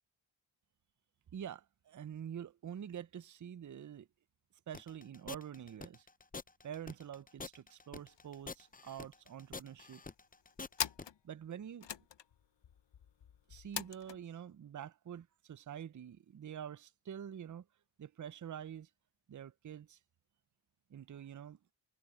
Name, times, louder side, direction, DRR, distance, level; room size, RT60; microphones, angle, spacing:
voice 1, 1.3-4.1 4.7-6.1 6.6-10.0 11.2-11.9 13.5-17.7 18.0-18.9 19.3-20.0 20.9-21.6, right 9 dB, 40° right, 0.6 m, -46 dB
sound 1, 4.7-11.1, left 4 dB, 20° left, 0.6 m, -47 dB
sound 2, 8.0-8.3 8.6-8.7 8.9-9.6 10.1-14.2, left 9 dB, 60° left, 1.0 m, -43 dB
cardioid pair, 50°, 49 cm